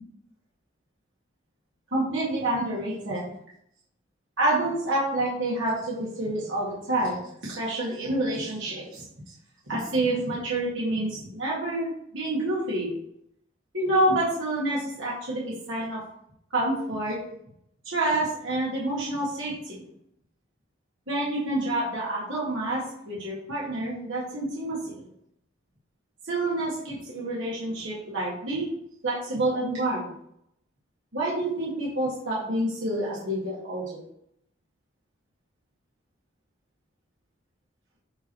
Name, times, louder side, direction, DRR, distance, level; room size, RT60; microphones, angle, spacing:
voice 1, 1.9-3.3 4.4-9.1 9.7-12.9 13.7-16.0 16.5-17.2 17.9-19.8 21.1-24.8 26.3-28.7 29.0-30.1 31.1-34.0, right 1 dB, 85° right, -6 dB, 2.1 m, -28 dB
7.7 x 3.2 x 4.5 m, 0.72 s
head